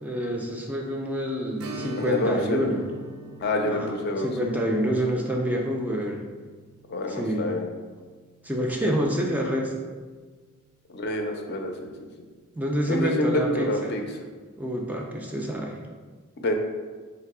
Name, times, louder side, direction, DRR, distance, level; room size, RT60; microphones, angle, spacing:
voice 1, 0.0-2.9 3.6-4.0 4.2-6.2 7.1-7.5 8.4-9.7 12.6-14.0 14.6-15.8, equal, 5° right, 0 dB, 0.3 m, -27 dB
Strum, 1.6-10.8 11.1-11.2 13.8-13.9 14.4-14.5, right 2 dB, 85° right, 0.5 m, -44 dB
voice 2, 2.0-2.6 3.4-4.3 6.9-7.7 10.9-12.3 12.9-14.0 16.4-16.5, left 1 dB, 50° left, 3 dB, 0.5 m, -27 dB
3.3 x 2.9 x 4.7 m, 1.4 s
head